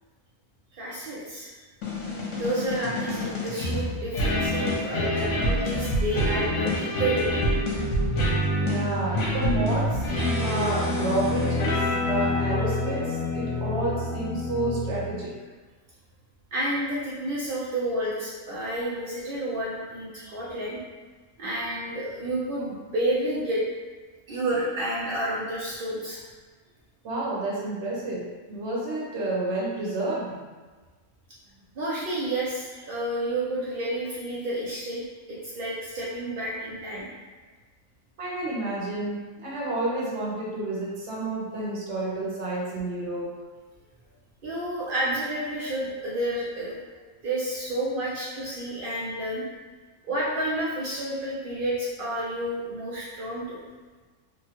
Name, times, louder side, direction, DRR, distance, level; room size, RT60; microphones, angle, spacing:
voice 1, 0.7-1.6 2.4-7.4 16.5-20.8 21.4-23.6 24.3-26.2 31.7-35.0 35.3-37.1 44.4-46.8 47.2-49.4 50.0-53.6, right 1 dB, 85° right, -7 dB, 0.4 m, -30 dB
sound 1, 1.8-15.3, left 1 dB, 60° left, 0.9 m, -27 dB
voice 2, 8.6-15.3 27.0-30.4 38.2-43.3, right 2 dB, 55° right, -5 dB, 0.9 m, -30 dB
3.0 x 2.2 x 2.8 m, 1.4 s
omnidirectional pair, 1.6 m